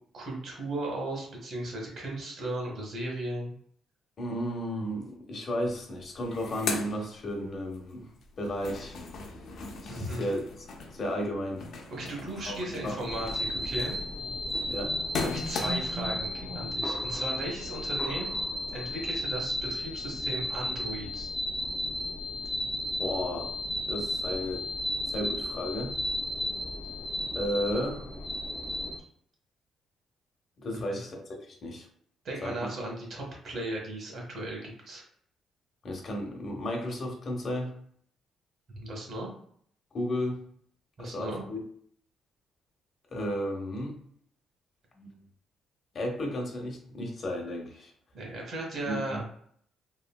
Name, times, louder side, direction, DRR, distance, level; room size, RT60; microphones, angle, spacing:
voice 1, 0.1-3.5 9.9-10.3 11.9-14.0 15.2-18.3 18.7-21.3 30.7-31.0 32.2-35.0 38.7-39.3 41.0-41.4 48.1-49.2, right 1 dB, 60° right, -1 dB, 1.3 m, -36 dB
voice 2, 4.2-8.1 8.4-9.0 9.8-11.7 12.5-12.6 12.8-13.0 14.7-15.0 23.0-23.5 23.9-24.7 25.0-26.0 27.3-28.1 30.6-31.9 32.4-32.7 35.8-37.8 39.9-40.4 41.0-41.6 43.1-44.0 45.0-45.1 45.9-47.9 48.9-49.2, equal, 50° left, 0 dB, 0.9 m, -33 dB
sound 1, 5.6-5.7 6.0-7.8 8.2-16.1, left 4 dB, 70° left, 0.6 m, -39 dB
sound 2, 13.1-29.0, left 1 dB, 5° left, 0.5 m, -33 dB
3.1 x 2.7 x 2.2 m, 0.63 s
cardioid pair, 90°, 0 cm